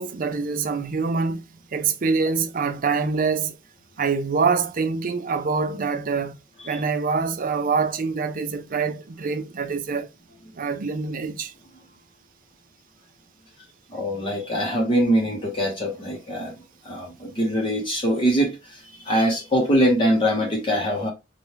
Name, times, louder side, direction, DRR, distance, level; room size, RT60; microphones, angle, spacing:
voice 1, 0.0-1.4 1.7-3.6 4.0-6.3 6.6-10.1 10.5-11.5, right 5 dB, 50° right, 0.5 m, -25 dB
voice 2, 13.9-16.6 16.8-21.1, equal, 25° left, 0.8 m, -23 dB
4.2 x 2.3 x 3.2 m
head